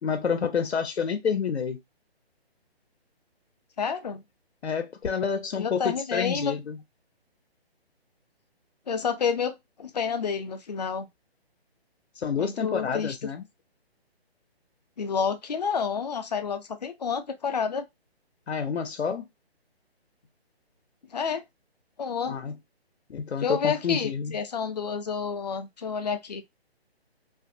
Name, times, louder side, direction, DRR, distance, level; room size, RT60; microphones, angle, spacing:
voice 1, 0.0-1.8 4.6-6.8 12.2-13.4 18.5-19.3 22.3-22.5 23.1-24.4, left 6 dB, 85° left, 0.6 m, -29 dB
voice 2, 3.8-4.2 5.6-6.5 8.9-11.1 12.4-13.2 15.0-17.8 21.1-21.4 22.0-22.4 23.4-26.4, left 6 dB, 40° left, 0.4 m, -29 dB
2.5 x 2.5 x 2.5 m
figure-of-eight pair, 150°, 32 cm